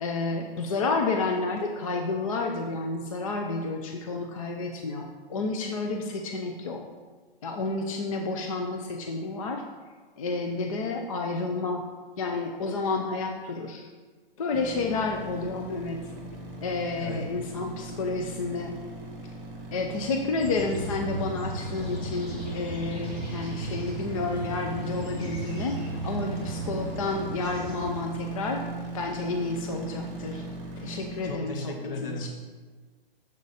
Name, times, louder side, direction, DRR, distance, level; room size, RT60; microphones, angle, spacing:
voice 1, 0.0-6.8 7.4-9.6 10.2-11.8 12.2-13.9 14.4-16.0 16.6-18.7 19.7-25.8 26.0-28.6 28.9-30.4 30.8-32.3, left 3 dB, 35° left, 3 dB, 0.5 m, -30 dB
sound 1, 14.5-31.3, right 3 dB, 25° right, 1.5 m, -39 dB
voice 2, 17.0-17.3 31.2-32.3, left 1 dB, 60° left, 4 dB, 1.3 m, -36 dB
sound 2, 20.4-28.0, right 1 dB, 20° left, 0.9 m, -36 dB
6.8 x 4.0 x 4.8 m, 1.4 s
hypercardioid pair, 155°, 31 cm